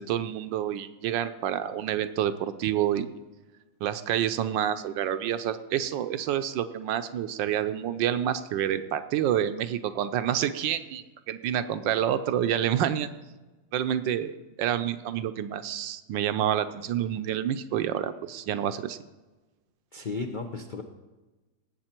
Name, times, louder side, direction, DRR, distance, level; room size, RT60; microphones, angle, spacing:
voice 1, 0.0-3.1 3.8-13.1 13.7-14.3 14.6-19.0, right 10 dB, 75° right, 12 dB, 1.3 m, -28 dB
voice 2, 19.9-20.8, left 4 dB, 70° left, 5 dB, 0.4 m, -34 dB
19.0 x 8.0 x 4.5 m, 1.2 s
omnidirectional pair, 2.2 m